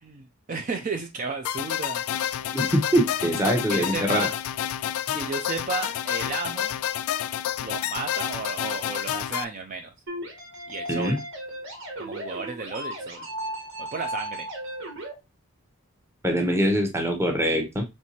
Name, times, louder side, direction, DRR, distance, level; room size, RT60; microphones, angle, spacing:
voice 1, 0.0-2.0 3.7-4.3 5.1-6.8 7.6-9.9 10.7-11.2 12.0-13.3 13.8-14.5, right 4 dB, 40° right, 5 dB, 0.4 m, -33 dB
sound 1, 1.4-9.4, left 10 dB, 90° left, 0.3 m, -29 dB
voice 2, 2.5-4.3 10.9-11.2 16.2-17.8, equal, 10° right, 4 dB, 0.8 m, -23 dB
sound 2, 10.1-15.1, right 1 dB, 60° right, 1.6 m, -35 dB
4.4 x 3.3 x 2.8 m, 0.23 s
head